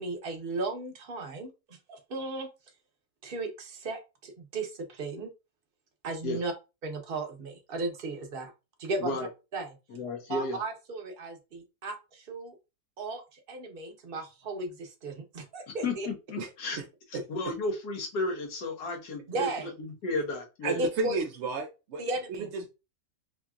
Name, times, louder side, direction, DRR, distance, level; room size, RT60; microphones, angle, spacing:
voice 1, 0.0-2.5 3.2-5.3 6.0-6.5 6.8-8.5 8.8-9.2 9.5-9.7 10.3-12.5 13.0-16.1 19.3-19.7 20.8-21.2 22.0-22.5, right 2 dB, 45° right, 4 dB, 0.9 m, -35 dB
voice 2, 9.9-10.6 15.8-16.8 17.3-19.5 20.0-20.8, left 2 dB, 90° left, 1 dB, 1.6 m, -33 dB
voice 3, 17.1-17.5 20.6-22.0 22.5-22.7, right 4 dB, 70° right, 3 dB, 0.7 m, -33 dB
4.2 x 2.8 x 2.4 m, 0.27 s
omnidirectional pair, 1.6 m